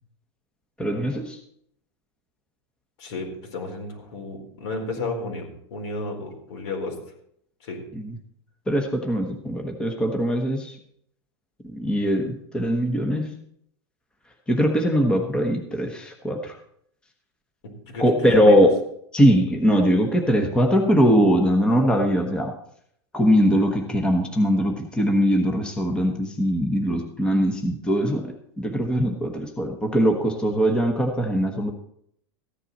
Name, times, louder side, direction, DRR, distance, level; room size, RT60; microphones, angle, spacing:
voice 1, 0.8-1.4 7.9-8.1 8.7-10.7 11.6-13.4 14.5-16.6 18.0-18.8 19.1-22.5 23.1-31.7, equal, 5° left, 3 dB, 1.1 m, -21 dB
voice 2, 3.0-6.9 7.6-7.8 17.8-18.6, left 2 dB, 75° left, 1 dB, 4.3 m, -32 dB
15.0 x 10.0 x 4.2 m, 0.70 s
supercardioid pair, 155°, 15 cm